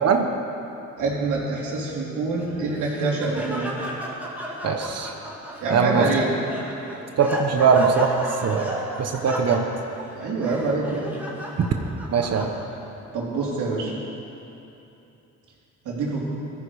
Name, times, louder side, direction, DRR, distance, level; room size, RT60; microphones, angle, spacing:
voice 1, 1.0-3.7 5.6-6.3 7.5-7.7 10.1-11.1 13.1-13.9 15.8-16.2, right 3 dB, 80° right, -4 dB, 4.0 m, -26 dB
Laughter, 2.4-12.9, right 1 dB, 5° right, 2.7 m, -34 dB
voice 2, 4.6-5.1 5.7-6.0 7.2-8.1 8.4-9.6 11.6-11.7 12.1-12.5, right 6 dB, 55° right, 4 dB, 1.2 m, -21 dB
17.5 x 14.0 x 5.0 m, 2.9 s
cardioid pair, 90°, 30 cm